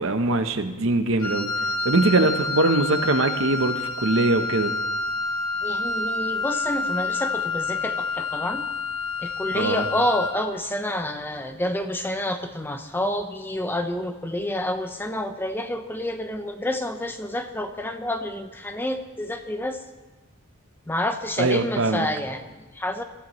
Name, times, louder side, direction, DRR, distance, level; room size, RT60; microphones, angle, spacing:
voice 1, 0.0-1.5 1.8-4.7 9.5-9.8 21.4-22.1, right 2 dB, 60° right, 8 dB, 0.9 m, -22 dB
Wind instrument woodwind instrument, 1.2-10.5, left 3 dB, 70° left, 1.3 m, -28 dB
voice 2, 5.6-8.6 9.2-19.8 20.9-23.0, left 1 dB, 10° left, 7 dB, 0.7 m, -28 dB
22.5 x 14.0 x 3.1 m, 1.1 s
head